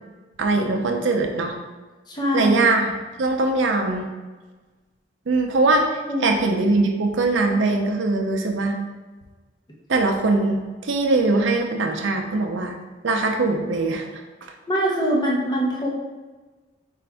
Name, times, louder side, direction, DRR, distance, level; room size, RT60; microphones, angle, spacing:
voice 1, 0.4-1.6 2.3-2.9 3.2-4.1 5.3-8.8 9.9-12.8 13.0-14.0, right 3 dB, 75° right, 3 dB, 0.5 m, -21 dB
voice 2, 2.1-2.5 6.1-6.4 14.7-15.9, right 1 dB, 20° left, -3 dB, 0.7 m, -23 dB
4.6 x 2.5 x 3.4 m, 1.3 s
head